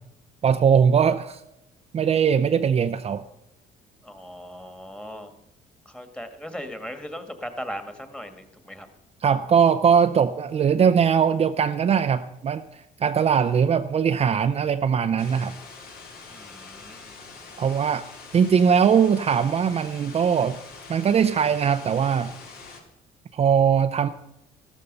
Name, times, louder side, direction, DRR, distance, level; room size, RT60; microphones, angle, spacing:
voice 1, 0.4-1.4 1.9-3.2 9.2-15.5 17.6-18.1 18.3-20.6 20.9-22.3 23.3-24.1, right 7 dB, 35° right, 8 dB, 0.6 m, -21 dB
voice 2, 4.0-5.3 5.9-8.9 16.3-17.8, equal, 5° left, 7 dB, 1.8 m, -38 dB
sound 1, 15.2-22.8, left 4 dB, 65° left, 3.2 m, -44 dB
14.0 x 12.5 x 5.4 m, 0.86 s
cardioid pair, 110°, 17 cm